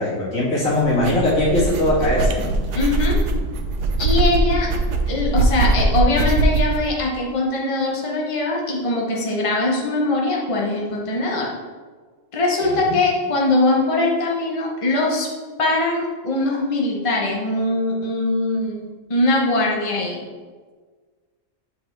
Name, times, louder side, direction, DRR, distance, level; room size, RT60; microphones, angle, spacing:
voice 1, 0.0-2.5 12.6-13.0, left 1 dB, 90° left, -7 dB, 2.4 m, -20 dB
sound 1, 0.7-6.8, right 2 dB, 70° right, 0.9 m, -21 dB
voice 2, 2.7-3.2 4.0-4.7 5.1-11.5 12.3-15.3 15.6-20.2, left 2 dB, 25° left, -2 dB, 0.9 m, -21 dB
7.6 x 4.6 x 3.3 m, 1.5 s
omnidirectional pair, 1.4 m